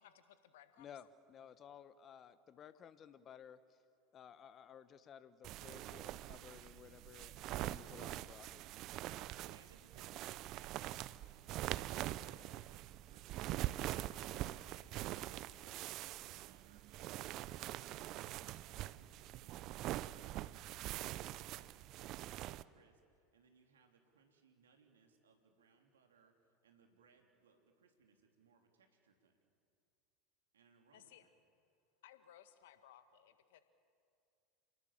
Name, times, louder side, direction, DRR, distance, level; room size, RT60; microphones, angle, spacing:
voice 1, 0.0-0.9 30.9-31.3 32.0-33.6, left 10 dB, 70° left, 10 dB, 1.7 m, -61 dB
voice 2, 0.8-3.6 4.1-8.6, left 8 dB, 35° left, 14 dB, 1.3 m, -56 dB
sound 1, 5.4-22.6, right 15 dB, 50° right, 0.7 m, -44 dB
voice 3, 9.4-29.3 30.5-31.3, right 5 dB, 80° right, 3 dB, 3.4 m, -70 dB
28.5 x 19.0 x 7.6 m, 2.4 s
hypercardioid pair, 80°, 0 cm